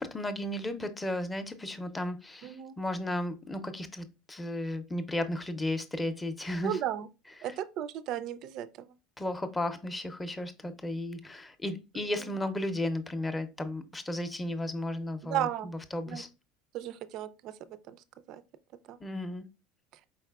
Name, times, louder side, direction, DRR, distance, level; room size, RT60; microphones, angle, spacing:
voice 1, 0.0-6.8 7.4-7.5 9.2-16.3 19.0-19.4, left 1 dB, 10° left, 0.5 m, -34 dB
voice 2, 2.4-2.7 6.6-7.1 7.4-8.9 12.2-12.3 15.2-15.7 16.1-16.2 16.7-18.0 18.3-18.4 18.9-19.0, right 11 dB, 50° right, 0.3 m, -35 dB
4.6 x 4.0 x 2.2 m
supercardioid pair, 145°, 0 cm